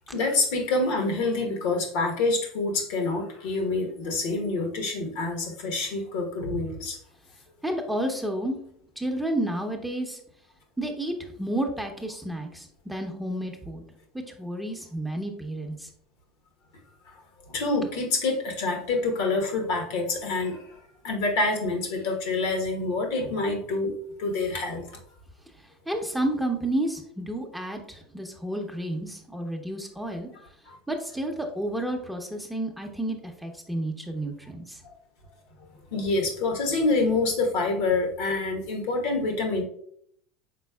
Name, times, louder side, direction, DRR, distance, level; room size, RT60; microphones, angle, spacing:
voice 1, 0.1-7.0 17.1-17.2 17.5-20.6 21.0-23.9 24.2-24.9 30.7-30.8 34.8-34.9 35.9-39.6, left 3 dB, 70° left, 2 dB, 1.2 m, -27 dB
voice 2, 7.6-8.6 9.0-10.2 10.8-13.8 14.1-15.9 25.9-30.3 30.9-34.8, right 1 dB, ahead, 2 dB, 0.8 m, -31 dB
5.2 x 4.0 x 2.3 m, 0.66 s
hypercardioid pair, 80°, 0 cm